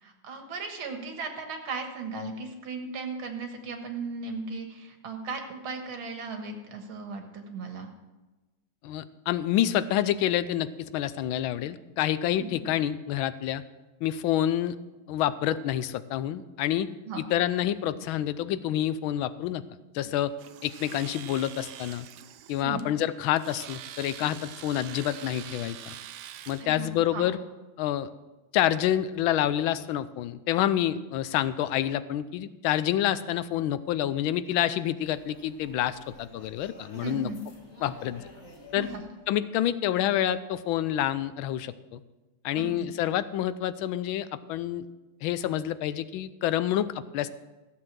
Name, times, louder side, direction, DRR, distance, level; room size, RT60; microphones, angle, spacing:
voice 1, 0.0-7.9 12.4-12.5 17.1-17.2 22.6-22.9 26.6-27.3 36.9-37.4 38.8-39.0 42.5-42.9, right 4 dB, 85° right, 4 dB, 2.4 m, -37 dB
voice 2, 8.8-13.6 14.0-14.8 15.1-16.9 17.3-19.6 19.9-20.3 20.6-22.1 22.5-25.9 26.5-27.4 27.8-28.1 28.5-37.3 37.8-38.2 38.7-38.9 39.3-42.0 42.4-44.9 45.2-47.3, left 12 dB, 85° left, 14 dB, 1.4 m, -28 dB
Domestic sounds home sounds, 20.4-26.7, right 11 dB, 70° right, 1.1 m, -45 dB
sound 1, 35.0-40.2, left 2 dB, 40° left, 2.0 m, -51 dB
14.0 x 7.6 x 6.1 m, 1.1 s
omnidirectional pair, 2.2 m